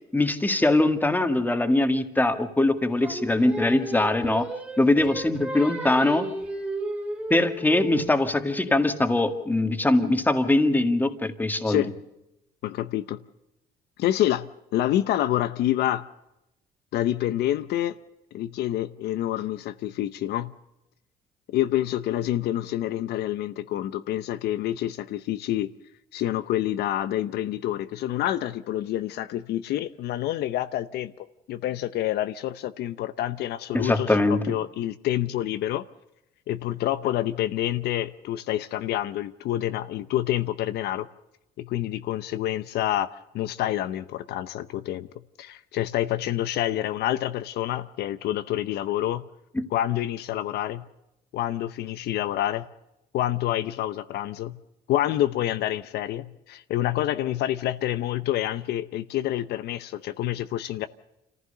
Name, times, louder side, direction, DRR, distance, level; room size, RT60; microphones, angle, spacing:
voice 1, 0.1-4.5 4.8-6.3 7.3-11.8 33.7-34.4 49.6-49.7, left 2 dB, 10° left, 1.8 m, -22 dB
Singing, 3.0-8.2, right 1 dB, 10° right, 2.8 m, -34 dB
voice 2, 12.6-13.2 14.0-16.1 16.9-18.0 18.3-20.5 21.5-25.7 26.1-31.1 31.5-35.8 36.5-41.1 41.6-45.1 45.4-49.2 49.7-50.8 51.3-52.7 53.1-54.6 54.9-60.9, left 13 dB, 75° left, 0.8 m, -27 dB
26.5 x 15.0 x 6.8 m
cardioid pair, 110°, 17 cm